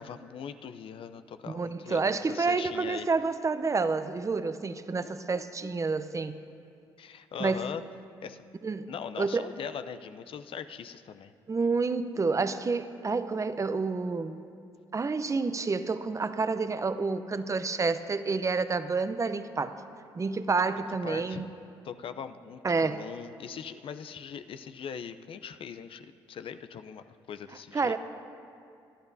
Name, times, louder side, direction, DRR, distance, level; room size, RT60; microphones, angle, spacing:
voice 1, 0.0-3.1 5.0-5.4 7.0-7.8 8.2-8.4 8.9-11.3 20.8-21.4 21.8-28.0, left 7 dB, 60° left, 10 dB, 0.6 m, -41 dB
voice 2, 1.5-6.4 7.4-7.7 8.6-8.9 9.2-9.5 11.5-14.4 14.9-19.7 20.1-21.5 22.6-23.0 27.7-28.0, right 4 dB, 30° right, 11 dB, 0.7 m, -29 dB
24.5 x 12.0 x 2.7 m, 2.5 s
hypercardioid pair, 55°, 11 cm